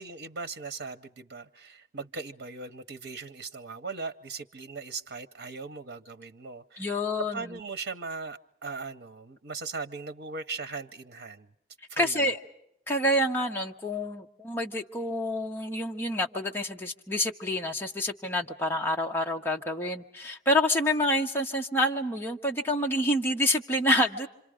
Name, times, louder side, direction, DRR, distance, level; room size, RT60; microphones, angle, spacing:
voice 1, 0.0-7.0 7.3-11.5 11.9-12.3, right 4 dB, 90° right, 10 dB, 0.8 m, -39 dB
voice 2, 6.8-7.4 12.0-12.4 12.9-24.3, left 1 dB, 15° left, 1 dB, 1.0 m, -27 dB
27.0 x 26.5 x 5.0 m, 0.78 s
head